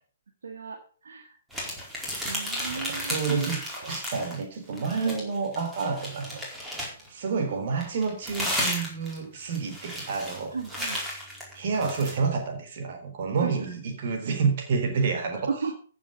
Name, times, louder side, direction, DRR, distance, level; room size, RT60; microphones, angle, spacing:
voice 1, 0.4-1.3 2.3-3.6 5.0-5.2 10.5-11.0 13.4-13.5 15.5-15.7, right 5 dB, 60° right, 1.8 m, -34 dB
sound 1, 1.5-4.4 4.7-7.1 7.8-12.2, equal, 5° right, 4.6 m, -33 dB
voice 2, 2.7-6.4 7.1-10.5 11.6-15.5, right 5 dB, 45° right, 3.9 m, -29 dB
14.5 x 7.7 x 5.5 m
figure-of-eight pair, 125°, 0 cm